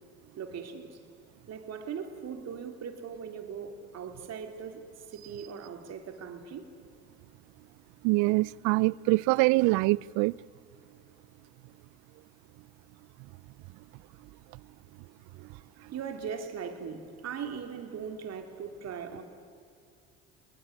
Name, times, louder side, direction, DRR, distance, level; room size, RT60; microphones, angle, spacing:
voice 1, 0.4-1.0 1.5-6.7 15.8-19.2, right 6 dB, 55° right, 3.6 m, -39 dB
voice 2, 8.0-10.3, right 23 dB, 70° right, 0.6 m, -24 dB
27.5 x 20.5 x 9.8 m
hypercardioid pair, 60°, 31 cm